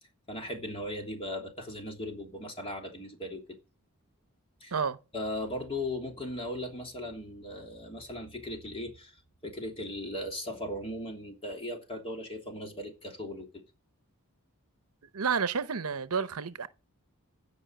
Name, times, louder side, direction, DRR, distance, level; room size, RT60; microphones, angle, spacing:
voice 1, 0.3-3.4 4.6-4.8 5.1-9.2 9.4-13.6, left 1 dB, 25° left, 3.1 m, -38 dB
voice 2, 15.1-16.7, right 6 dB, 70° right, 0.8 m, -30 dB
16.0 x 5.6 x 9.0 m
head